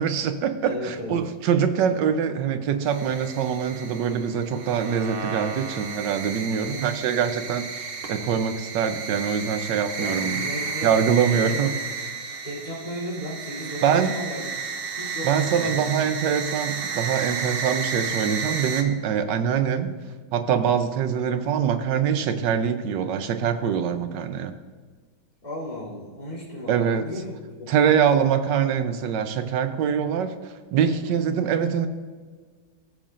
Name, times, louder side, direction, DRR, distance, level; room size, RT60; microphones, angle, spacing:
voice 1, 0.0-10.4 10.8-11.8 13.8-14.1 15.2-19.9 20.3-24.5 26.7-27.0 27.7-31.9, right 7 dB, 90° right, 9 dB, 1.4 m, -24 dB
voice 2, 0.6-1.2 6.5-6.8 10.0-10.9 11.3-11.7 12.4-14.4 15.0-15.9 25.4-27.9 30.9-31.2, left 1 dB, 25° left, -8 dB, 3.3 m, -35 dB
sound 1, 2.9-18.8, right 5 dB, 55° right, 0.6 m, -32 dB
15.0 x 7.2 x 2.5 m, 1.5 s
omnidirectional pair, 1.8 m